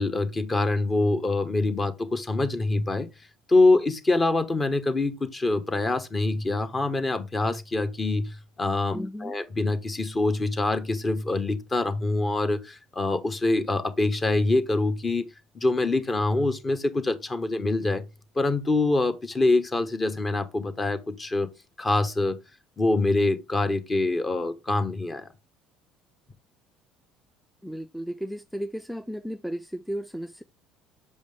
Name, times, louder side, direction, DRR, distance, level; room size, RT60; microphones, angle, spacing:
voice 1, 0.0-3.1 3.5-15.3 15.5-18.0 18.4-21.5 21.8-22.4 22.8-25.3, left 2 dB, 25° left, 1.2 m, -25 dB
voice 2, 8.9-9.3 27.6-30.4, equal, ahead, 0.4 m, -34 dB
6.6 x 5.1 x 3.5 m
supercardioid pair, 80°, 0 cm